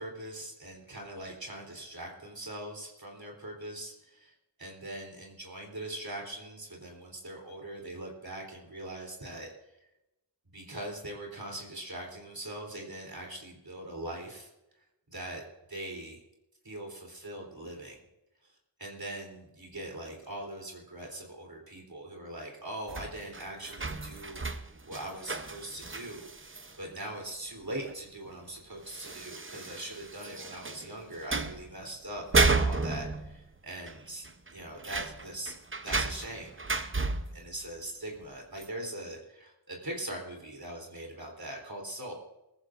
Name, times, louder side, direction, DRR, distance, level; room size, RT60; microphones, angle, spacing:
voice 1, 0.0-4.3 4.6-9.5 10.5-14.5 15.1-15.4 15.7-16.2 16.6-18.0 18.8-35.5 35.8-36.6 37.3-42.1, right 1 dB, 55° right, 0 dB, 3.5 m, -41 dB
sound 1, 22.9-26.8 27.8-27.9 28.3-28.4 28.9-30.9 31.2-31.7 32.1-33.6 33.9-34.0 34.2-37.5 38.6-38.7, right 3 dB, 30° right, 0.8 m, -32 dB
21.0 x 14.0 x 2.6 m, 0.93 s
wide cardioid pair, 50°, 43 cm